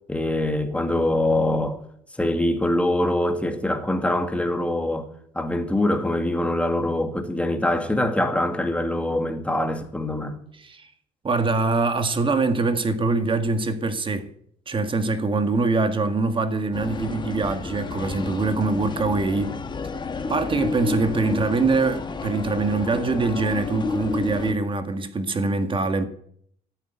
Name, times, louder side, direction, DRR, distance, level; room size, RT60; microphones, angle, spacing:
voice 1, 0.1-1.8 2.2-5.1 5.3-10.4, left 1 dB, 5° left, 2.3 m, -24 dB
voice 2, 11.2-14.3 14.7-19.6 20.3-26.1, right 3 dB, 30° right, 1.7 m, -23 dB
sound 1, 16.7-24.5, left 4 dB, 25° left, 1.5 m, -31 dB
13.5 x 8.3 x 9.6 m
cardioid pair, 110°, 17 cm